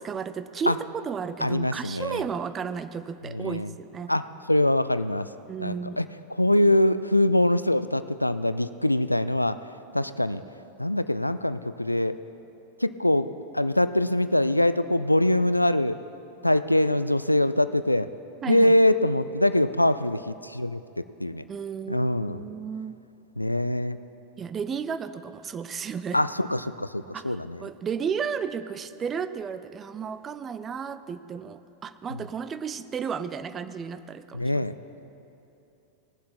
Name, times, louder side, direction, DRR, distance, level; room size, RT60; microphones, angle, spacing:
voice 1, 0.0-4.1 5.5-6.0 18.4-18.8 21.5-22.9 24.4-26.2 27.1-34.7, right 6 dB, 25° right, 12 dB, 0.5 m, -33 dB
voice 2, 1.4-2.2 3.3-3.7 4.1-5.3 5.6-9.6 9.9-10.4 10.8-12.2 12.8-13.3 13.5-16.0 16.4-18.1 18.5-21.4 21.9-22.5 23.4-24.0 26.1-27.6 34.3-34.7, left 1 dB, 85° left, 13 dB, 0.3 m, -23 dB
19.5 x 7.5 x 4.3 m, 2.9 s
figure-of-eight pair, 90°, 0 cm